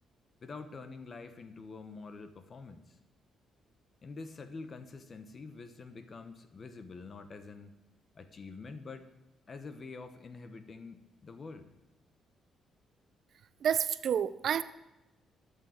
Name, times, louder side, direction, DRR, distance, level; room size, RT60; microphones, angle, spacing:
voice 1, 0.4-3.0 4.0-7.7 8.1-9.1 9.5-11.7, left 4 dB, 40° left, 10 dB, 1.1 m, -46 dB
voice 2, 13.6-14.6, right 8 dB, 65° right, 15 dB, 0.6 m, -29 dB
12.5 x 6.8 x 7.9 m, 0.95 s
cardioid pair, 90°, 0 cm